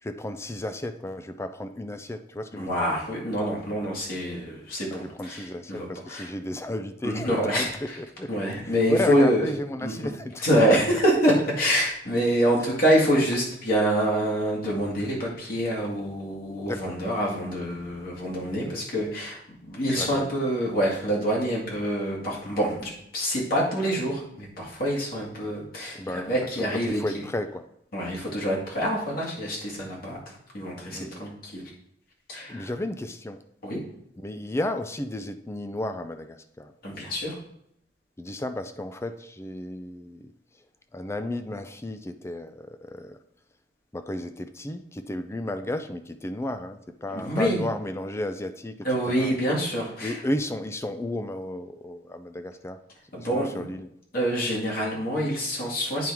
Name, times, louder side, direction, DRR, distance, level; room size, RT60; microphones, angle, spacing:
voice 1, 0.0-2.8 4.9-8.3 8.6-10.4 16.6-17.0 18.6-18.7 20.0-20.3 25.9-27.6 30.9-31.2 32.5-33.4 34.2-36.7 38.2-40.3 40.9-43.2 43.9-49.4 50.0-52.8 53.3-53.9, left 1 dB, 15° left, 9 dB, 0.4 m, -33 dB
voice 2, 2.5-6.3 7.0-8.0 8.3-9.5 9.8-9.9 10.4-27.0 27.9-30.2 30.5-31.7 32.3-32.7 33.6-33.8 36.8-37.3 47.1-47.7 48.8-50.2 53.1-53.7 54.1-56.1, equal, 55° left, -4 dB, 2.0 m, -26 dB
9.3 x 4.5 x 3.5 m, 0.75 s
head